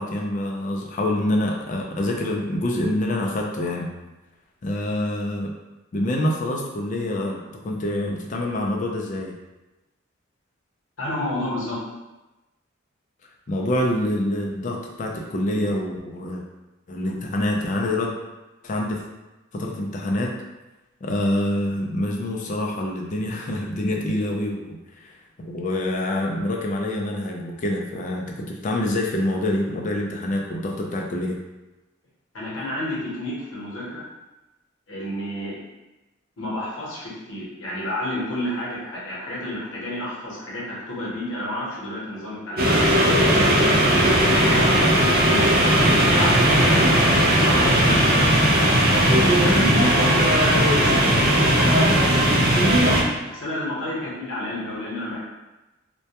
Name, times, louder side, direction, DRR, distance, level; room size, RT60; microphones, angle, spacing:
voice 1, 0.0-3.9 4.6-5.6 5.9-9.3 13.5-16.4 16.9-18.1 18.6-19.0 19.5-20.3 21.0-31.4, left 1 dB, 40° left, 0 dB, 0.4 m, -26 dB
voice 2, 11.0-11.8 32.3-34.1 34.9-35.6 36.4-43.0 43.3-45.0 45.2-46.9 47.4-48.4 49.2-52.7 53.2-55.2, left 1 dB, 70° left, -7 dB, 0.9 m, -31 dB
sound 1, 42.6-53.0, right 1 dB, 45° right, 0.4 m, -17 dB
2.2 x 2.1 x 2.8 m, 1.1 s
head